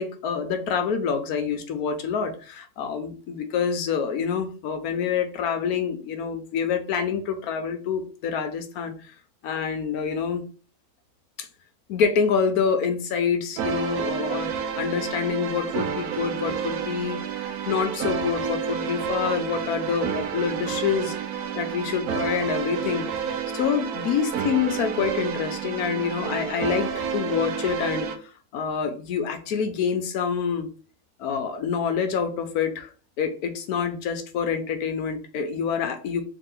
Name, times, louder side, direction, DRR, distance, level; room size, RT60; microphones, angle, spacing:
voice 1, 0.0-8.9 9.4-10.4 11.4-11.5 11.9-14.5 14.8-17.2 17.5-21.1 21.6-23.1 23.5-28.1 28.5-30.7 31.2-32.9 33.2-36.3, left 6 dB, 85° left, 7 dB, 1.2 m, -26 dB
sound 1, 13.6-28.2, right 7 dB, 90° right, 1.1 m, -30 dB
3.3 x 2.9 x 3.7 m, 0.38 s
omnidirectional pair, 1.6 m